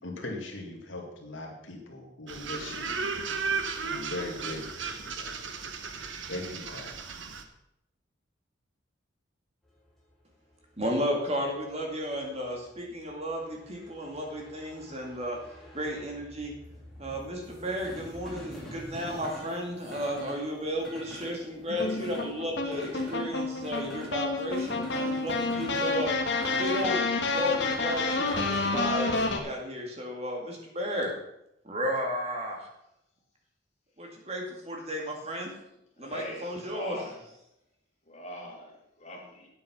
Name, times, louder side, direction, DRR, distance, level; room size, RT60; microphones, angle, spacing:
voice 1, 0.0-3.0 3.8-4.9 5.2-5.3 6.3-7.0, left 2 dB, 75° left, 1 dB, 2.3 m, -39 dB
sound 1, 2.3-7.4, right 5 dB, 75° right, 1.1 m, -35 dB
sound 2, 9.7-29.2, equal, ahead, 3.0 m, -46 dB
voice 2, 10.8-15.4 15.7-16.5 17.0-26.1 26.4-31.1 31.6-32.7 34.0-35.5 36.0-37.0, equal, 30° right, 0 dB, 2.1 m, -33 dB
sound 3, 21.7-29.4, left 3 dB, 60° left, 1.5 m, -29 dB
voice 3, 36.0-37.2 38.0-39.5, equal, 35° left, -3 dB, 3.2 m, -42 dB
9.4 x 8.5 x 5.9 m, 0.81 s
head